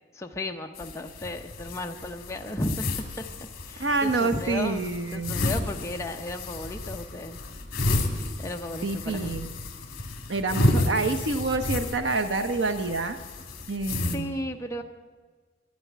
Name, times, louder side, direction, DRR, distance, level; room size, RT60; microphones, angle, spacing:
voice 1, 0.1-3.2 3.7-7.4 8.4-9.5 14.1-14.8, left 1 dB, 15° left, 2 dB, 0.8 m, -34 dB
sound 1, 0.7-14.1, left 2 dB, 55° left, 2.1 m, -31 dB
voice 2, 3.8-5.4 8.8-9.5 10.3-13.2 13.7-14.4, right 3 dB, 80° right, 8 dB, 0.9 m, -27 dB
11.5 x 11.0 x 9.4 m, 1.5 s
head